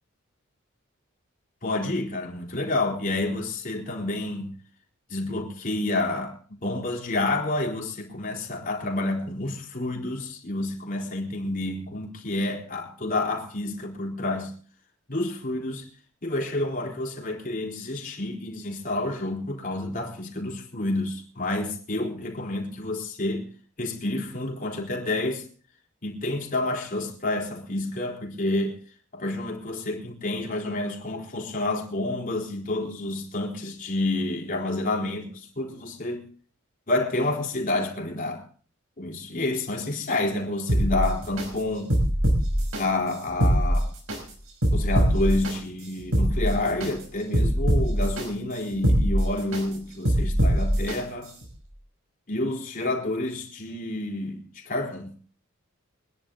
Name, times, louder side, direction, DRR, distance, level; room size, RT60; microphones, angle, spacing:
voice 1, 1.6-4.5 5.1-14.6 15.1-15.8 16.2-23.5 23.8-25.4 26.0-28.8 29.1-36.2 36.9-38.5 39.0-41.9 42.8-43.9 44.7-51.3 52.3-55.1, left 2 dB, 40° left, 4.0 m, -29 dB
sound 1, 40.7-41.5 41.9-42.8 43.3-44.2 44.6-45.5 46.0-46.9 47.3-48.2 48.7-49.6 50.0-51.0 51.4-51.5, equal, 85° right, 5.5 m, -22 dB
25.0 x 10.5 x 3.9 m
head